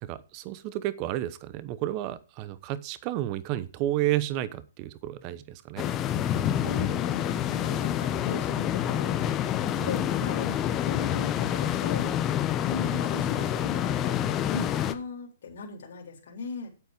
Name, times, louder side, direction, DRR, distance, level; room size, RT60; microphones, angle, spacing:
voice 1, 0.0-5.8 9.7-10.0, right 14 dB, 35° right, 16 dB, 1.0 m, -31 dB
sound 1, 5.8-14.9, left 10 dB, 25° left, 1.0 m, -27 dB
voice 2, 6.5-9.2 9.8-12.1 12.7-16.7, left 5 dB, 60° left, 1 dB, 3.8 m, -38 dB
9.4 x 8.1 x 5.2 m, 0.34 s
hypercardioid pair, 135°, 0 cm